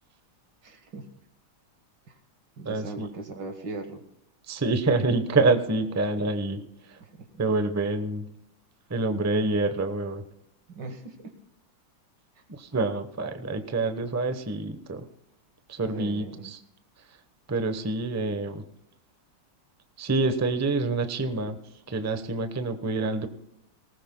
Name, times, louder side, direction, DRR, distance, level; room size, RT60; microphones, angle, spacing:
voice 1, 0.6-1.1 2.1-2.2 2.6-4.0 7.0-7.1 7.3-7.4 10.7-11.4 15.9-16.5, right 3 dB, 60° right, 5 dB, 2.0 m, -39 dB
voice 2, 2.6-3.1 4.5-6.6 6.9-7.0 7.4-8.3 8.9-10.2 12.5-15.1 15.7-16.6 17.5-18.6 20.0-21.6 21.9-23.3, right 3 dB, 25° right, 8 dB, 0.3 m, -27 dB
19.5 x 18.5 x 2.2 m, 0.78 s
omnidirectional pair, 2.2 m